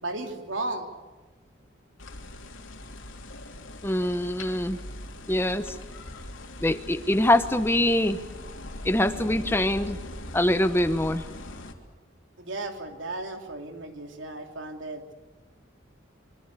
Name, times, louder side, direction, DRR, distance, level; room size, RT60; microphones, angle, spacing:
voice 1, 0.0-0.9 12.4-15.1, right 2 dB, 80° right, 4 dB, 3.1 m, -35 dB
sound 1, 2.0-11.7, left 1 dB, 90° left, 3.1 m, -41 dB
voice 2, 3.8-4.8 5.3-5.8 6.6-8.2 8.8-10.0 10.3-11.2, left 1 dB, 10° left, 10 dB, 0.9 m, -24 dB
26.0 x 24.0 x 8.3 m, 1.2 s
head